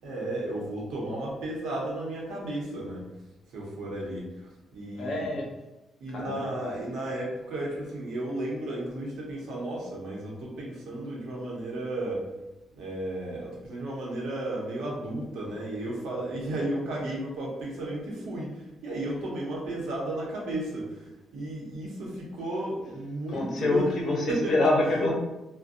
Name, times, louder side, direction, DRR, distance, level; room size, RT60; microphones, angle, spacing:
voice 1, 0.0-3.1 3.5-5.3 6.0-12.3 12.7-23.8 24.3-24.5, right 1 dB, 80° right, -3 dB, 0.8 m, -34 dB
voice 2, 4.9-5.5 6.1-6.5 23.3-25.1, left 2 dB, 60° left, -2 dB, 0.8 m, -26 dB
2.6 x 2.2 x 2.5 m, 0.99 s
cardioid pair, 90°, 0 cm